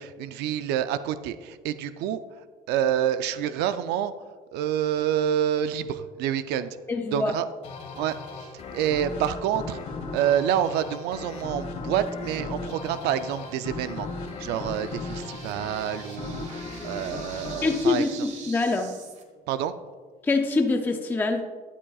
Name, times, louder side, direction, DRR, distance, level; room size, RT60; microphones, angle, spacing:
voice 1, 0.0-2.2 2.7-4.1 4.5-6.8 7.1-7.5 7.9-9.8 10.1-14.1 14.4-18.3 19.5-19.7, right 10 dB, 85° right, 12 dB, 0.5 m, -28 dB
voice 2, 6.9-7.3 17.6-18.9 20.2-21.4, left 3 dB, 10° left, 4 dB, 0.5 m, -24 dB
sound 1, 7.6-18.9, left 3 dB, 40° left, 1.4 m, -37 dB
sound 2, 13.4-19.2, right 5 dB, 45° right, 1.4 m, -46 dB
13.5 x 10.0 x 2.4 m, 1.5 s
cardioid pair, 145°, 17 cm